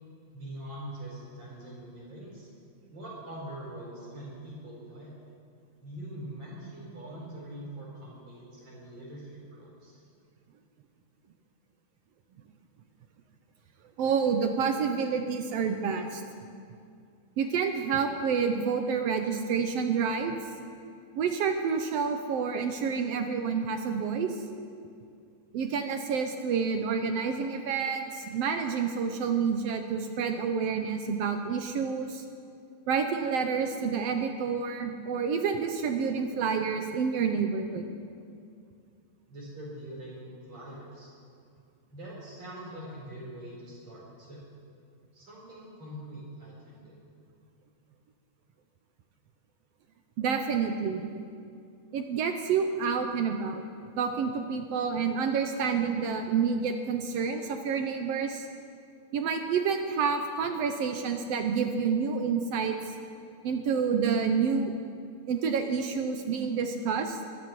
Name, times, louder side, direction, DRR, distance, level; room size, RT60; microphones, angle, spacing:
voice 1, 0.3-2.5 2.9-5.1 5.8-10.0 39.3-41.1 41.9-44.5 45.1-47.0, right 1 dB, 60° right, -6 dB, 5.4 m, -43 dB
voice 2, 14.0-16.2 17.4-20.4 21.2-24.4 25.5-32.2 32.9-37.8 50.2-51.1 51.9-53.6 54.0-58.5 59.1-62.9 63.4-64.7 65.3-67.2, right 6 dB, 75° right, 5 dB, 1.5 m, -28 dB
25.0 x 12.5 x 3.1 m, 2.4 s
omnidirectional pair, 3.4 m